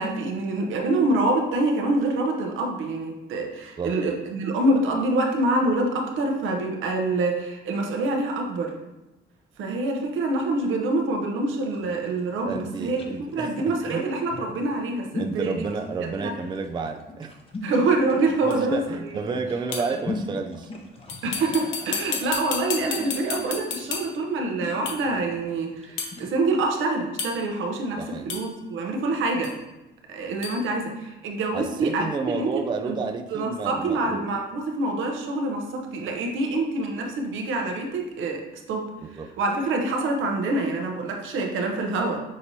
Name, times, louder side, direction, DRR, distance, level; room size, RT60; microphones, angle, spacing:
voice 1, 0.0-8.7 9.6-13.0 13.3-15.7 16.0-16.3 17.6-18.8 21.2-29.5 30.1-33.0 33.3-38.9 39.4-42.2, right 2 dB, 80° right, 2 dB, 0.8 m, -26 dB
sound 1, 11.6-26.3, left 2 dB, 30° left, 0.8 m, -40 dB
voice 2, 12.4-14.1 15.2-17.4 18.4-20.7 28.0-28.3 31.5-34.2 39.0-39.3, right 4 dB, 25° right, 4 dB, 0.3 m, -31 dB
sound 2, 18.5-18.6 19.7-20.0 21.1-24.3 24.9-25.1 26.0-26.2 27.2-27.6 28.3-28.6 29.4-29.6 30.4-30.6, left 6 dB, 80° left, 0.7 m, -32 dB
6.0 x 2.9 x 2.7 m, 1.0 s
cardioid pair, 90°, 20 cm